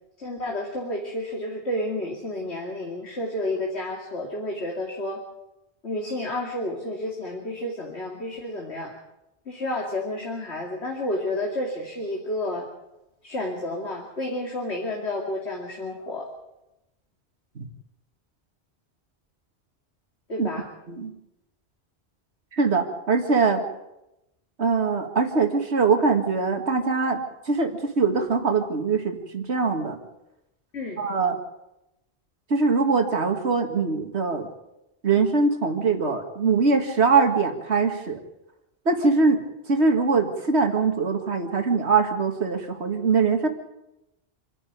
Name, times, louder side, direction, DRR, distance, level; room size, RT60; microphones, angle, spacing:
voice 1, 0.2-5.2 5.8-8.9 9.5-12.7 13.2-16.3 20.3-20.7 30.7-31.0, left 1 dB, 85° left, 0 dB, 3.0 m, -30 dB
voice 2, 22.5-23.6 24.6-30.0 31.0-31.4 32.5-34.5 35.0-38.2 38.9-43.5, right 4 dB, 90° right, 5 dB, 2.2 m, -22 dB
27.0 x 11.0 x 9.3 m, 0.91 s
omnidirectional pair, 1.1 m